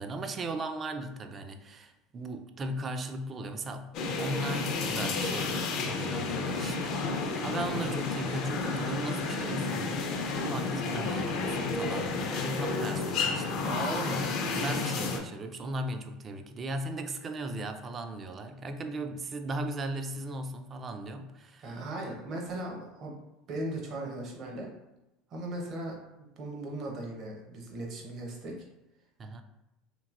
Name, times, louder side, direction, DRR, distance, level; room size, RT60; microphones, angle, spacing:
voice 1, 0.0-13.6 14.1-14.2 14.6-21.8 29.2-29.4, right 1 dB, 30° right, 7 dB, 0.3 m, -37 dB
sound 1, 3.9-15.2, left 3 dB, 55° left, 0.5 m, -31 dB
voice 2, 7.6-8.0 13.6-14.3 21.6-23.1 23.5-24.7 25.3-28.5, right 2 dB, 50° right, 0 dB, 0.8 m, -38 dB
3.0 x 2.7 x 2.5 m, 0.95 s
supercardioid pair, 95°, 0 cm